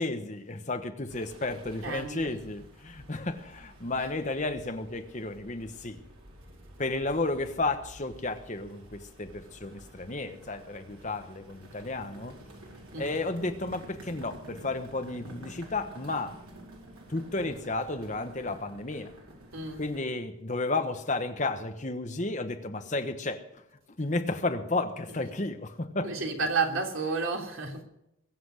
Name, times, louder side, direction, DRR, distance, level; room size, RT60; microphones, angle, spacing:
voice 1, 0.0-6.0 6.8-12.4 13.0-16.4 17.1-19.1 19.8-23.6 24.0-26.1, left 2 dB, 35° left, 1.2 m, -32 dB
sound 1, 1.1-20.0, right 1 dB, 90° right, 4.8 m, -50 dB
voice 2, 1.8-2.3 12.9-13.2 19.5-19.9 26.0-27.8, right 4 dB, 70° right, 3.3 m, -31 dB
22.5 x 7.9 x 6.4 m
head